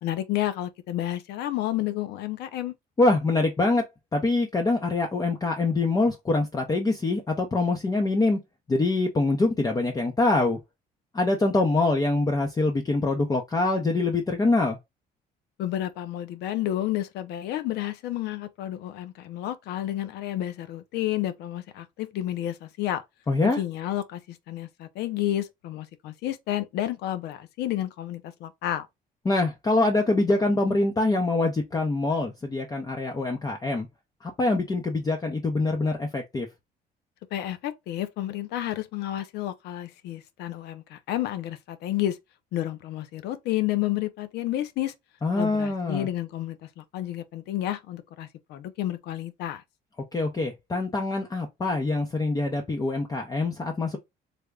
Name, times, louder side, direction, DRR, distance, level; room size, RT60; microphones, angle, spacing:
voice 1, 0.0-2.7 15.6-23.0 23.4-28.9 37.3-42.2 42.5-44.9 45.3-49.6, left 13 dB, 80° left, 0.6 m, -31 dB
voice 2, 3.0-3.8 4.1-8.4 8.7-10.6 11.1-14.8 23.3-23.6 29.2-33.9 34.2-36.5 45.2-46.1 50.1-54.0, left 2 dB, 20° left, 0.6 m, -24 dB
3.4 x 2.1 x 3.5 m
cardioid pair, 110°, 17 cm